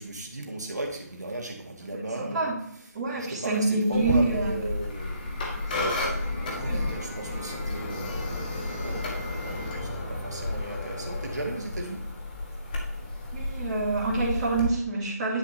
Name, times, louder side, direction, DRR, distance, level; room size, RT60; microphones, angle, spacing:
voice 1, 0.0-2.5 3.1-5.3 6.5-8.5 8.8-9.0 9.4-9.7 10.1-12.0, right 2 dB, 80° right, 1 dB, 2.0 m, -36 dB
voice 2, 1.9-2.6 2.9-4.5 5.6-5.7 6.6-6.8 13.3-15.4, right 3 dB, 25° right, -9 dB, 2.8 m, -27 dB
sound 1, 3.9-14.6, left 2 dB, 30° left, 1.7 m, -32 dB
10.0 x 6.7 x 2.8 m, 0.75 s
figure-of-eight pair, 155°, 9 cm